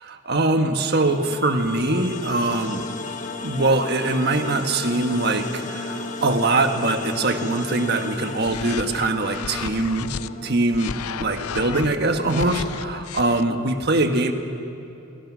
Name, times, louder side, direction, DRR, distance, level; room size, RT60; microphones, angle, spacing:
voice 1, 0.0-2.9 3.4-10.1 10.4-14.3, right 2 dB, 50° right, 6 dB, 1.5 m, -22 dB
sound 1, 0.9-12.0, left 3 dB, 35° left, 1.3 m, -34 dB
sound 2, 8.4-10.3 10.7-13.4, left 7 dB, 90° left, 0.6 m, -33 dB
30.0 x 24.0 x 6.3 m, 2.8 s
head